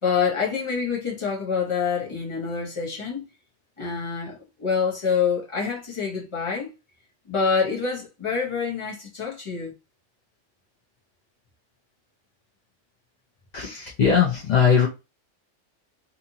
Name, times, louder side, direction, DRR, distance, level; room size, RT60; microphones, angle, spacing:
voice 1, 0.0-3.2 3.8-6.7 7.3-9.7, left 6 dB, 25° left, 0.9 m, -26 dB
voice 2, 13.5-14.9, left 7 dB, 50° left, 0.5 m, -20 dB
2.8 x 2.5 x 2.8 m
omnidirectional pair, 1.3 m